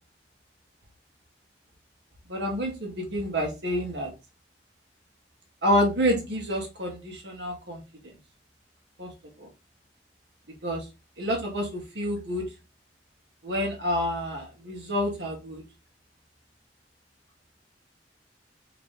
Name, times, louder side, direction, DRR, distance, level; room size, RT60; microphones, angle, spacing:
voice 1, 2.3-4.1 5.6-7.8 9.0-9.1 10.6-10.8 11.2-12.4 13.4-15.6, equal, 75° right, 1 dB, 1.8 m, -28 dB
4.8 x 3.1 x 3.3 m, 0.26 s
head